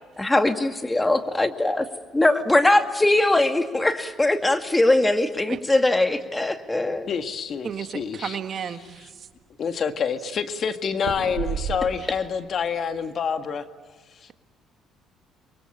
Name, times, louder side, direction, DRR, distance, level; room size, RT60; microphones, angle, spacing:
voice 1, 0.2-1.9 2.1-7.1, left 2 dB, 15° left, 7 dB, 2.3 m, -21 dB
voice 2, 6.9-8.4 9.6-13.6, left 6 dB, 50° left, 8 dB, 1.8 m, -27 dB
sound 1, 7.1-8.0 8.5-8.6 8.9-9.5 11.0-12.2 12.6-13.0, right 9 dB, 80° right, 3.7 m, -33 dB
voice 3, 7.6-9.3, right 8 dB, 55° right, 9 dB, 1.8 m, -33 dB
28.5 x 23.0 x 8.7 m, 1.5 s
supercardioid pair, 65°, 0 cm